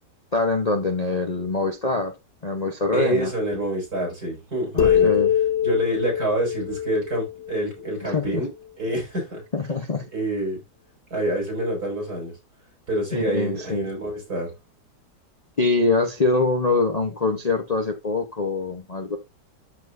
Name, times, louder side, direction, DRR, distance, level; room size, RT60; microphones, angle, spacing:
voice 1, 0.3-2.1 2.4-3.3 4.7-5.3 8.0-8.4 9.5-10.0 13.1-13.9 15.6-19.2, left 3 dB, 30° left, 0.8 m, -24 dB
voice 2, 2.9-5.1 5.6-8.5 8.8-9.4 10.1-10.6 11.1-12.3 12.9-14.5, right 1 dB, 60° right, 6.2 m, -27 dB
sound 1, 4.8-8.3, left 10 dB, 65° left, 0.6 m, -23 dB
13.0 x 4.3 x 2.6 m
omnidirectional pair, 1.8 m